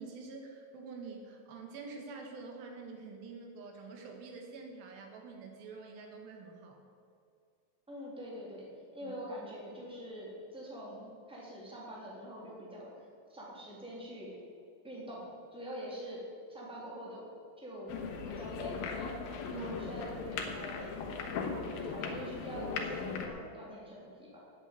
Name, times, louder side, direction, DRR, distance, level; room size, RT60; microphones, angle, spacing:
voice 1, 0.0-6.8 9.0-9.1 19.5-20.1, right 4 dB, 90° right, 2 dB, 3.4 m, -47 dB
voice 2, 7.9-8.7 8.9-14.4 14.8-16.2 16.5-17.2 17.6-18.0 18.2-20.9 21.4-24.4, equal, ahead, -5 dB, 3.0 m, -45 dB
sound 1, 17.9-23.3, left 5 dB, 90° left, 3.0 m, -38 dB
9.2 x 8.3 x 9.2 m, 2.4 s
omnidirectional pair, 4.0 m